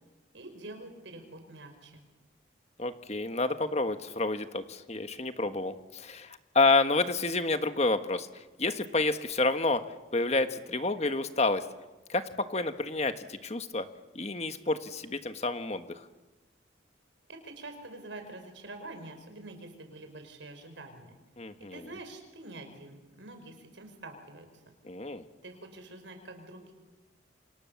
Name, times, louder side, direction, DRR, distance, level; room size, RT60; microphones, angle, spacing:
voice 1, 0.3-2.0 17.3-21.2 21.7-24.5 25.4-26.7, right 2 dB, 75° right, 6 dB, 5.4 m, -46 dB
voice 2, 2.8-8.3 8.6-9.8 10.1-11.6 12.1-13.9 14.1-15.8 21.4-21.8 24.8-25.2, left 3 dB, 35° left, 8 dB, 1.4 m, -29 dB
29.0 x 26.0 x 7.2 m, 1.1 s
head